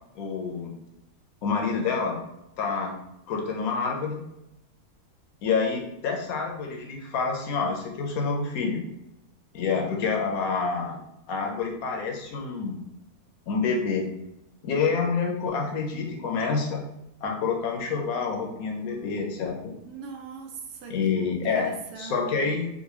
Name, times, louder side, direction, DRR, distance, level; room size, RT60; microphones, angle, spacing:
voice 1, 0.2-0.7 1.4-2.2 2.6-2.9 3.3-4.2 5.4-8.8 9.5-11.0 11.3-12.8 13.5-14.1 14.6-16.8 17.2-19.7 20.9-21.7 22.0-22.7, left 5 dB, 75° left, 1 dB, 1.1 m, -27 dB
voice 2, 19.9-21.2 21.5-22.5, right 5 dB, 85° right, 3 dB, 1.1 m, -40 dB
3.8 x 2.2 x 2.9 m, 0.87 s
omnidirectional pair, 1.6 m